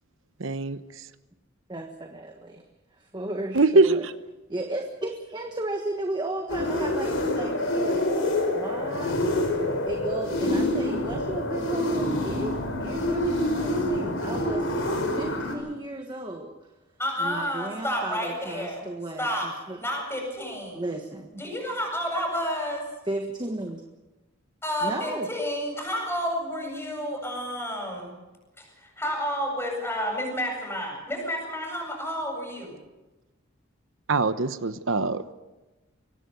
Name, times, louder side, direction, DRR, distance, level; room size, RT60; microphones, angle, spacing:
voice 1, 0.4-0.8 3.5-4.1 34.1-35.3, right 3 dB, 70° right, 12 dB, 1.1 m, -22 dB
voice 2, 1.7-2.6 2.9-4.1 4.5-8.1 8.5-9.2 9.9-16.5 17.2-19.8 20.7-21.3 23.1-23.8 24.8-25.3, right 2 dB, 25° right, 4 dB, 1.5 m, -34 dB
sound 1, 6.5-15.5, left 1 dB, 80° left, 5.1 m, -27 dB
voice 3, 17.0-18.8 19.2-20.9 21.3-22.9 24.6-28.2 28.6-32.7, equal, 10° left, 1 dB, 7.9 m, -30 dB
24.0 x 18.0 x 7.0 m, 1.1 s
head